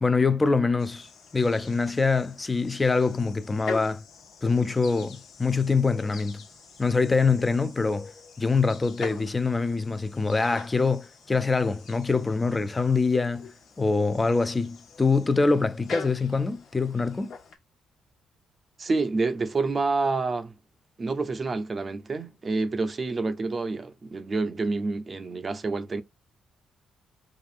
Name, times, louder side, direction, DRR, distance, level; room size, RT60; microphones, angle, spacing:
voice 1, 0.0-4.0 4.4-6.4 6.8-8.1 8.4-17.3, left 4 dB, 20° left, 0.5 m, -24 dB
sound 1, 0.8-17.5, left 5 dB, 75° left, 1.3 m, -44 dB
voice 2, 18.8-20.5 21.0-26.0, right 3 dB, 35° right, 0.5 m, -28 dB
4.9 x 2.5 x 2.5 m
cardioid pair, 90°, 0 cm